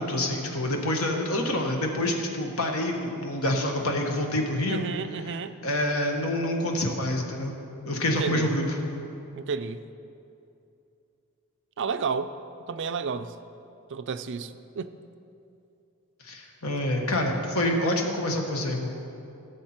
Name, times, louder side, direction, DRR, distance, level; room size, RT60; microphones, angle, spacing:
voice 1, 0.0-4.8 5.3-5.4 5.6-7.5 7.9-8.8 16.2-18.9, left 1 dB, 70° left, 2 dB, 1.4 m, -27 dB
voice 2, 4.7-5.5 8.1-8.5 9.3-9.8 11.8-12.3 12.7-13.3 13.9-14.9, right 5 dB, 55° right, 11 dB, 0.5 m, -31 dB
16.0 x 7.2 x 4.4 m, 2.7 s
head